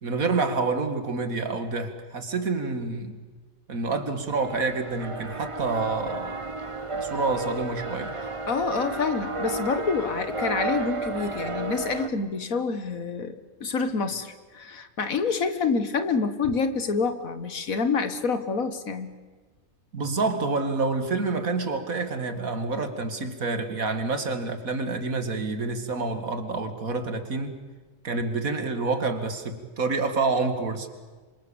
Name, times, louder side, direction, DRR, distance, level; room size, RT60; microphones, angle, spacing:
voice 1, 0.0-3.2 3.7-6.4 6.9-8.1 19.9-27.6 28.0-30.9, right 3 dB, 80° right, 8 dB, 2.6 m, -28 dB
sound 1, 4.3-12.1, right 2 dB, 25° right, 1.0 m, -32 dB
voice 2, 8.5-19.1, left 4 dB, 80° left, 10 dB, 2.0 m, -27 dB
27.0 x 25.0 x 7.2 m, 1.4 s
omnidirectional pair, 1.4 m